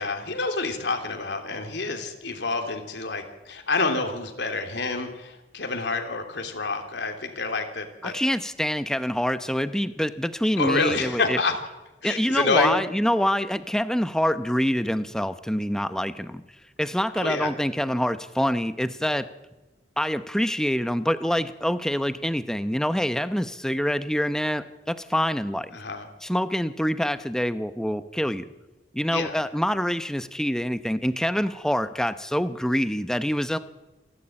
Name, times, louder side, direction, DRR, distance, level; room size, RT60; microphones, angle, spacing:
voice 1, 0.0-8.1 10.6-11.5 12.0-12.7 17.2-17.5 25.7-26.1 29.1-29.3, left 3 dB, 80° left, 4 dB, 3.0 m, -28 dB
voice 2, 8.0-11.4 12.0-16.4 16.8-19.3 20.0-25.7 26.2-28.4 28.9-33.6, equal, 5° left, 12 dB, 0.8 m, -26 dB
28.0 x 11.5 x 8.8 m, 1.1 s
head